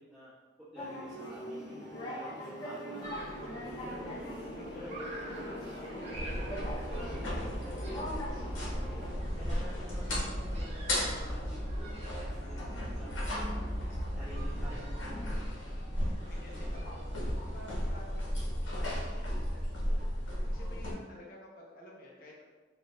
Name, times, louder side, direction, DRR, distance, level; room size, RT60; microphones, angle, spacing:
voice 1, 0.7-3.3 3.8-4.4 4.7-5.1 5.9-13.7 14.1-15.7 16.5-16.7 20.6-20.9, equal, ahead, -17 dB, 1.4 m, -50 dB
sound 1, 0.8-9.1, equal, 25° left, 0.9 m, -41 dB
sound 2, 3.0-18.3, right 1 dB, 35° right, 0.6 m, -49 dB
voice 2, 3.1-3.7 4.4-5.7 13.0-13.7 14.7-15.0 16.3-22.4, left 1 dB, 50° left, -3 dB, 0.6 m, -52 dB
sound 3, 6.1-20.9, equal, 85° left, 1.0 m, -35 dB
4.1 x 2.4 x 3.1 m, 1.3 s
head